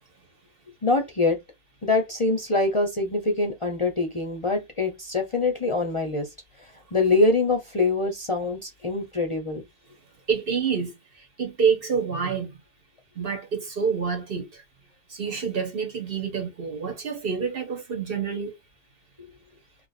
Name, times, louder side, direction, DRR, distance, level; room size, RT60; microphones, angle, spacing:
voice 1, 0.8-1.4 1.8-6.3 6.6-9.6, left 3 dB, 35° left, 0.6 m, -24 dB
voice 2, 10.3-10.9 11.4-12.5 13.1-14.6 15.1-18.6, right 6 dB, 55° right, 1.3 m, -27 dB
3.1 x 2.4 x 4.0 m
omnidirectional pair, 1.1 m